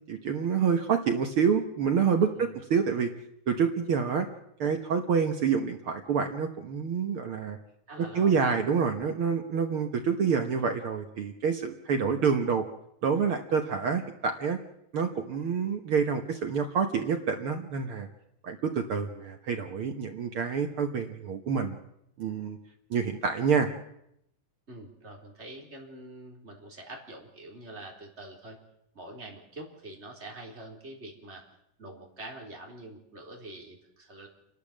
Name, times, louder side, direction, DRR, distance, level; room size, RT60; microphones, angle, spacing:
voice 1, 0.1-3.1 3.5-4.3 4.6-7.6 8.0-12.6 13.0-14.6 14.9-18.1 18.4-21.8 22.2-22.6 22.9-23.7, right 6 dB, 60° right, 5 dB, 1.5 m, -27 dB
voice 2, 7.9-8.4 22.9-23.0 24.7-28.6 28.9-31.4 31.8-34.3, right 1 dB, 20° right, 0 dB, 4.0 m, -45 dB
29.0 x 12.0 x 7.4 m, 0.75 s
omnidirectional pair, 3.9 m